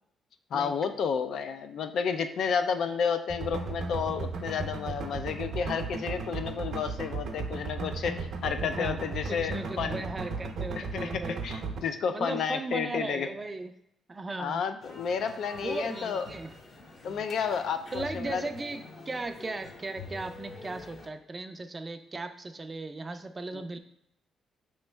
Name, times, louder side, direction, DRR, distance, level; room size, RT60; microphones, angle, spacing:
voice 1, 0.5-10.0 10.8-13.3 14.4-16.3 17.0-18.5 23.5-23.8, left 6 dB, 70° left, 8 dB, 0.4 m, -31 dB
sound 1, 3.3-11.8, right 4 dB, 70° right, 0.7 m, -35 dB
voice 2, 8.6-11.4 12.1-13.7 14.1-14.6 15.6-16.5 17.9-23.8, right 2 dB, 25° right, 9 dB, 0.4 m, -37 dB
sound 2, 14.8-21.1, left 3 dB, 45° left, 0.7 m, -46 dB
5.3 x 3.1 x 3.3 m, 0.78 s
cardioid pair, 90°, 0 cm